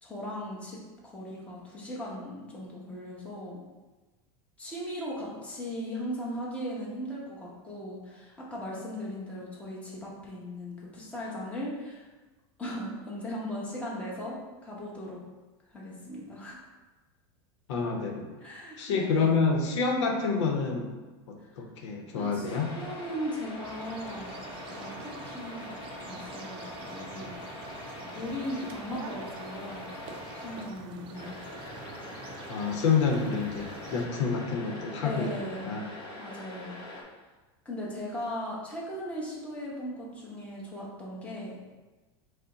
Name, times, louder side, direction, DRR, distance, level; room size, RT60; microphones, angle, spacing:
voice 1, 0.0-3.6 4.6-12.0 12.6-15.2 15.7-16.6 18.4-19.4 21.4-21.5 22.1-24.4 24.7-27.7 28.0-30.0 30.3-31.4 35.0-35.7 36.2-36.8 37.6-41.6, equal, 10° left, -5 dB, 1.0 m, -38 dB
voice 2, 17.7-18.2 18.8-20.9 21.3-22.7 32.5-35.9, left 5 dB, 90° left, 1 dB, 0.7 m, -28 dB
sound 1, 22.5-30.6 31.1-37.0, left 1 dB, 35° left, 0.9 m, -43 dB
sound 2, 23.6-34.1, right 5 dB, 35° right, 0.4 m, -46 dB
5.4 x 2.1 x 3.8 m, 1.2 s
supercardioid pair, 145°, 15 cm